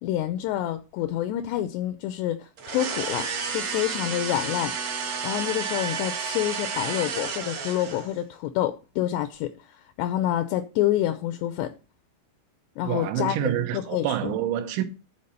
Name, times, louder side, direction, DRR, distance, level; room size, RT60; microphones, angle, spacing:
voice 1, 0.0-4.7 5.2-9.5 10.0-11.7 12.8-14.3, left 12 dB, 85° left, 2.5 m, -28 dB
sound 1, 2.6-8.2, right 5 dB, 60° right, 1.7 m, -31 dB
voice 2, 12.8-14.8, right 11 dB, 80° right, 3.3 m, -27 dB
12.0 x 4.3 x 5.5 m
omnidirectional pair, 5.4 m